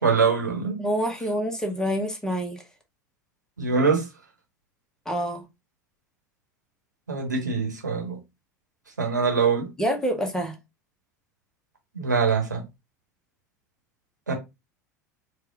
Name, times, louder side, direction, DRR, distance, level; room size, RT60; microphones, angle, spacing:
voice 1, 0.0-0.8 3.6-4.1 7.1-8.2 9.0-9.7 11.9-12.6 14.3-14.4, right 5 dB, 80° right, 1.2 m, -23 dB
voice 2, 0.8-2.6 5.1-5.4 9.8-10.5, equal, 5° left, 0.9 m, -27 dB
4.5 x 2.3 x 3.5 m
figure-of-eight pair, 75°, 10 cm